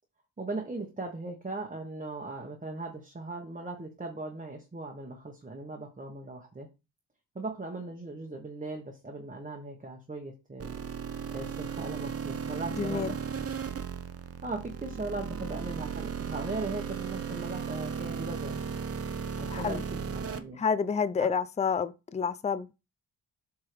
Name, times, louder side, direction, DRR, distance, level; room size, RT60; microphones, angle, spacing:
voice 1, 0.4-6.7 7.3-10.8 11.3-13.2 14.4-18.6 19.4-20.6 21.2-21.3, right 2 dB, 20° right, 1.2 m, -38 dB
sound 1, 10.6-20.4, right 6 dB, 40° right, 0.7 m, -36 dB
voice 2, 12.7-13.2 19.5-19.8 20.6-22.7, left 6 dB, 20° left, 0.4 m, -29 dB
7.7 x 3.6 x 5.0 m
wide cardioid pair, 130°, 37 cm